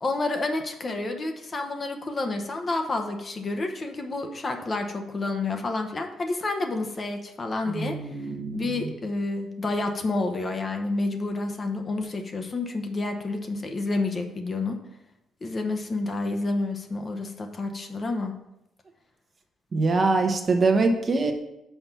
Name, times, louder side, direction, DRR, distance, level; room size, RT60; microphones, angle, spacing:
voice 1, 0.0-8.0 8.5-14.8 15.4-18.3, left 2 dB, 35° left, 5 dB, 0.9 m, -29 dB
voice 2, 7.7-8.9 19.7-21.3, right 3 dB, 40° right, 5 dB, 1.0 m, -24 dB
5.8 x 4.3 x 5.6 m, 0.86 s
cardioid pair, 90°, 0 cm